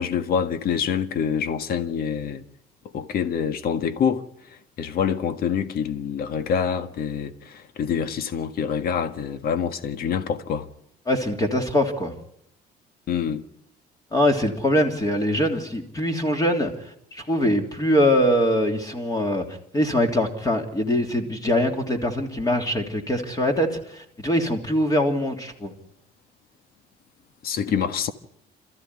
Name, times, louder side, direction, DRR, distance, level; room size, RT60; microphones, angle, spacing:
voice 1, 0.0-2.4 2.9-4.2 4.8-10.7 13.1-13.4 27.4-28.1, left 7 dB, 65° left, 1.7 m, -26 dB
voice 2, 11.1-12.1 14.1-16.7 17.1-19.4 19.7-25.7, left 1 dB, 20° left, 3.2 m, -23 dB
27.5 x 14.5 x 9.8 m
cardioid pair, 110°, 17 cm